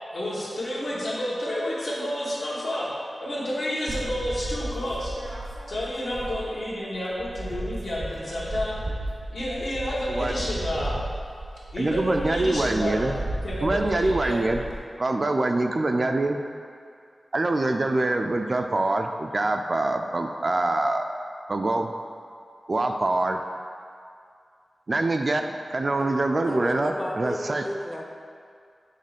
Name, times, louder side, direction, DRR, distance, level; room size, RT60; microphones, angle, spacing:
voice 1, 0.1-2.9 3.2-5.1 5.7-8.8 9.3-11.0 11.7-13.0 13.4-14.6, left 1 dB, 75° left, -7 dB, 1.5 m, -30 dB
sound 1, 3.9-6.7 7.0-14.8, right 1 dB, 85° right, 1.0 m, -34 dB
voice 2, 11.8-13.2 13.6-14.6 15.0-16.4 17.3-21.1 21.5-21.9 22.7-23.4 24.9-27.7, right 2 dB, 50° right, 5 dB, 0.4 m, -24 dB
voice 3, 26.5-28.0, left 1 dB, 25° left, 0 dB, 0.6 m, -33 dB
6.6 x 3.1 x 5.0 m, 2.3 s
wide cardioid pair, 65°, 0 cm